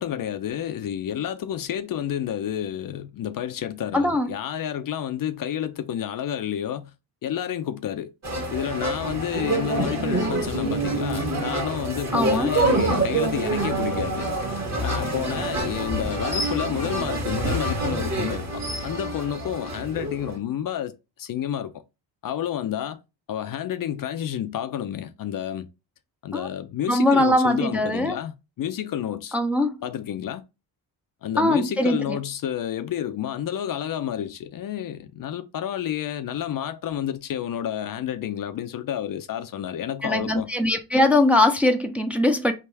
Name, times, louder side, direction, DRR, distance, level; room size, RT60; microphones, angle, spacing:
voice 1, 0.0-6.9 7.2-8.1 8.5-14.3 14.8-21.7 22.2-23.0 23.3-25.7 26.2-29.4 29.8-30.4 31.2-40.5, left 10 dB, 50° left, 0.5 m, -30 dB
voice 2, 3.9-4.3 12.1-12.5 26.3-26.5 26.9-28.2 29.3-29.8 31.4-32.2 40.0-42.5, left 1 dB, 5° right, 0.5 m, -21 dB
sound 1, 8.2-20.4, right 2 dB, 35° right, 1.4 m, -26 dB
3.4 x 2.5 x 4.5 m
supercardioid pair, 75°, 46 cm